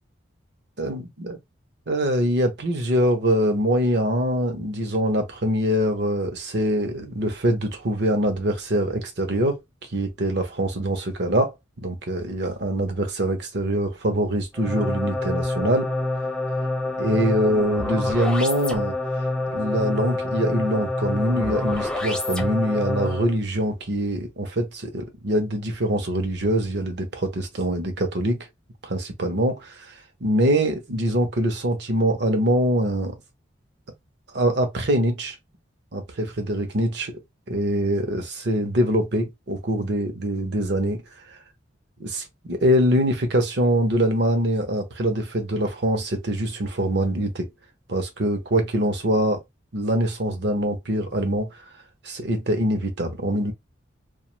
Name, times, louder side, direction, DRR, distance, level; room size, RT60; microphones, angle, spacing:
voice 1, 0.8-1.4 1.9-9.6 9.9-11.5 11.8-15.9 17.0-19.0 19.5-28.5 28.8-29.9 30.2-33.2 34.3-35.4 35.9-37.1 37.5-41.0 42.0-47.5 47.9-49.4 49.7-51.5 52.0-53.5, right 1 dB, 55° right, 0.8 m, -24 dB
sound 1, 14.5-23.3, left 2 dB, 5° left, 0.4 m, -27 dB
2.4 x 2.3 x 3.0 m
head